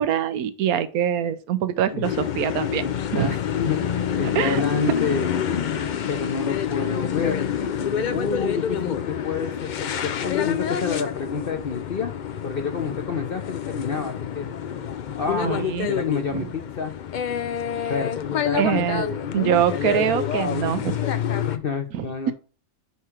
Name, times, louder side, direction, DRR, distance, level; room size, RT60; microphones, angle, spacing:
voice 1, 0.0-2.9 3.1-3.3 4.2-4.9 15.4-15.9 16.3-16.5 17.8-17.9 18.6-19.0 19.3-20.9 21.9-22.3, right 9 dB, 90° right, 13 dB, 1.2 m, -24 dB
sound 1, 2.0-21.6, left 8 dB, 65° left, 0.4 m, -27 dB
voice 2, 2.8-3.9 4.2-5.7 6.1-7.4 8.1-12.1 12.4-14.5 15.2-16.9 17.9-19.6 21.5-22.3, left 5 dB, 50° left, 4 dB, 0.8 m, -29 dB
5.7 x 4.9 x 4.4 m, 0.35 s
omnidirectional pair, 1.5 m